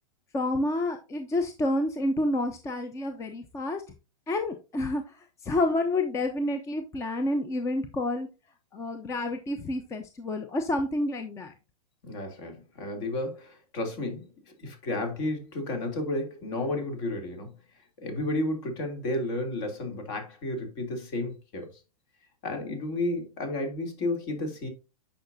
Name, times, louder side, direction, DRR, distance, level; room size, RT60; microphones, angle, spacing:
voice 1, 0.3-3.8 4.3-8.3 8.7-11.5, left 1 dB, 15° left, 0.8 m, -29 dB
voice 2, 12.0-14.3 14.6-21.8 22.4-24.7, left 2 dB, 50° left, 3.1 m, -32 dB
8.7 x 5.8 x 2.7 m
hypercardioid pair, 125°, 19 cm